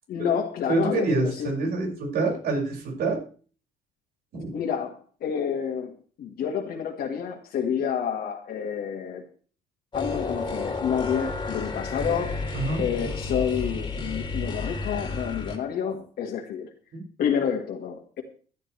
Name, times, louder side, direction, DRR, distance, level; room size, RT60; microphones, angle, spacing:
voice 1, 0.1-1.5 4.5-5.9 6.2-9.2 9.9-16.7 17.2-18.2, left 8 dB, 65° left, 1 dB, 1.8 m, -29 dB
voice 2, 0.7-3.2 4.3-4.5 12.5-12.8 16.9-17.0, right 3 dB, 65° right, 1 dB, 6.0 m, -26 dB
sound 1, 9.9-15.6, left 3 dB, 30° left, 2.7 m, -31 dB
15.5 x 11.5 x 3.3 m, 0.42 s
cardioid pair, 110°, 17 cm